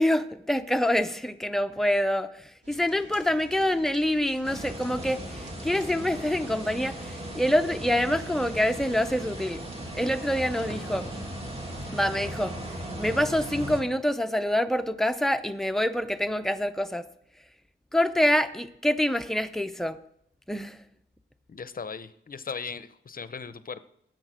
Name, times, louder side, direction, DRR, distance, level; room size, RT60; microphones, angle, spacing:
voice 1, 0.0-9.6 9.9-11.1 11.9-12.6 13.0-17.1 17.9-20.0 20.5-20.8, left 1 dB, ahead, 8 dB, 0.5 m, -26 dB
sound 1, 2.6-12.2, right 1 dB, 60° right, 2.4 m, -48 dB
sound 2, 4.4-13.8, right 1 dB, 30° right, 2.0 m, -37 dB
voice 2, 21.5-23.9, left 5 dB, 45° left, 13 dB, 0.6 m, -38 dB
11.0 x 8.0 x 6.2 m, 0.74 s
wide cardioid pair, 135°, 20 cm